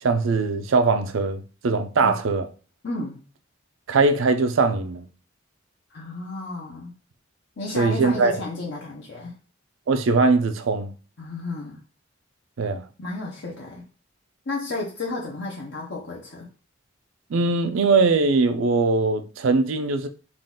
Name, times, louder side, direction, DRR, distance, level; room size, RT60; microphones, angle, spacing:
voice 1, 0.0-2.5 3.9-5.1 7.8-8.4 9.9-10.9 12.6-12.8 17.3-20.1, right 3 dB, 80° right, 0.5 m, -21 dB
voice 2, 2.8-3.2 5.9-6.9 7.6-9.3 11.2-11.8 13.0-13.8 14.5-16.5, left 2 dB, 60° left, 0.8 m, -32 dB
3.8 x 2.4 x 3.7 m
head